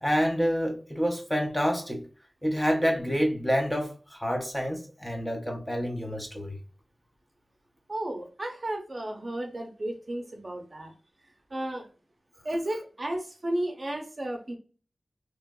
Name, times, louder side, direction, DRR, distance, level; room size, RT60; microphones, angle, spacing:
voice 1, 0.0-2.1 2.4-6.6, equal, 10° left, 0.7 m, -28 dB
voice 2, 7.9-10.9 11.2-11.9 12.4-14.6, right 1 dB, 45° right, 0.7 m, -33 dB
3.0 x 2.5 x 2.2 m
wide cardioid pair, 65°, 0 cm